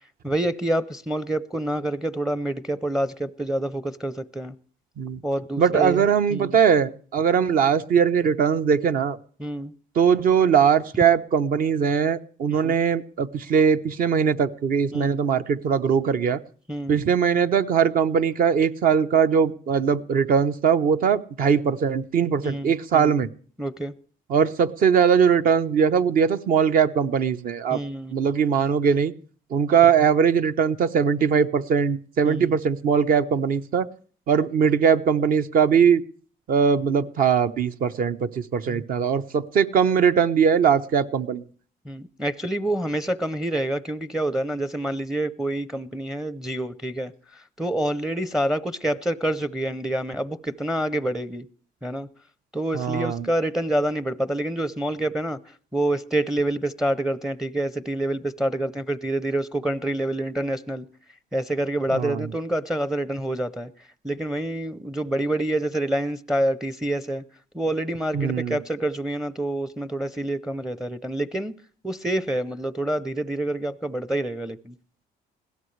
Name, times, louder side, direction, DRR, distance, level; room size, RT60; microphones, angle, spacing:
voice 1, 0.2-4.5 5.2-6.0 6.3-6.5 9.4-9.7 12.5-12.8 14.9-15.4 16.7-17.0 22.4-23.1 23.6-23.9 27.7-28.2 32.2-32.6 38.7-38.8 41.9-51.5 51.8-52.1 52.5-55.4 55.7-60.9 61.3-63.7 64.0-67.2 67.5-71.5 71.8-74.8, right 1 dB, 5° right, 0.6 m, -27 dB
voice 2, 5.6-9.2 9.9-16.4 16.9-23.3 24.3-27.8 28.1-29.1 29.5-33.9 34.3-36.0 36.5-41.4 52.7-53.3 61.9-62.3 68.1-68.6, right 7 dB, 55° right, 1.0 m, -21 dB
21.0 x 16.5 x 3.3 m
cardioid pair, 110°, 17 cm